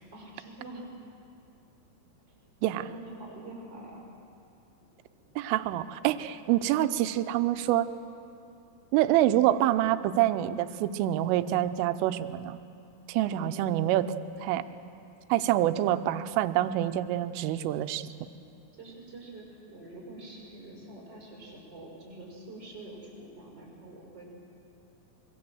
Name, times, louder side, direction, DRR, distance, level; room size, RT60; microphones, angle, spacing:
voice 1, 0.1-0.9 2.7-4.1 13.3-13.7 14.4-14.5 18.7-24.3, right 2 dB, 20° right, -3 dB, 6.1 m, -46 dB
voice 2, 5.4-7.9 8.9-12.6 13.1-14.0 14.4-14.6 15.3-18.1, right 13 dB, 90° right, 11 dB, 3.3 m, -26 dB
25.0 x 23.0 x 7.8 m, 2.7 s
omnidirectional pair, 5.7 m